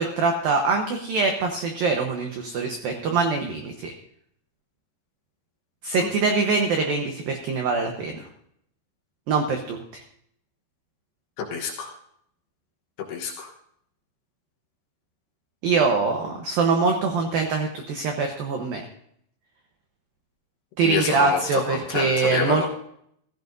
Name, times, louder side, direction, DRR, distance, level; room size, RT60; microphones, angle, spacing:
voice 1, 0.0-3.9 5.8-8.2 9.3-10.0 15.6-18.8 20.8-22.7, right 4 dB, 80° right, 4 dB, 2.0 m, -24 dB
voice 2, 11.4-11.9 13.0-13.5 20.8-22.7, left 6 dB, 70° left, 2 dB, 2.8 m, -28 dB
15.0 x 15.0 x 2.6 m, 0.69 s
omnidirectional pair, 5.7 m